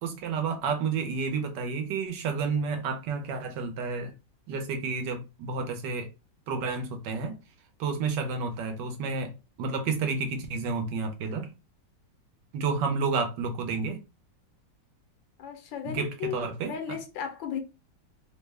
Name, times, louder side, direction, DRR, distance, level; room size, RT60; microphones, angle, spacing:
voice 1, 0.0-4.1 4.5-6.1 6.5-7.3 7.8-9.3 9.6-11.5 12.5-14.0 15.8-16.7, right 4 dB, 75° right, 1.3 m, -30 dB
voice 2, 15.4-16.4 16.6-17.6, left 8 dB, 85° left, 1.5 m, -35 dB
3.6 x 2.1 x 3.3 m
omnidirectional pair, 2.0 m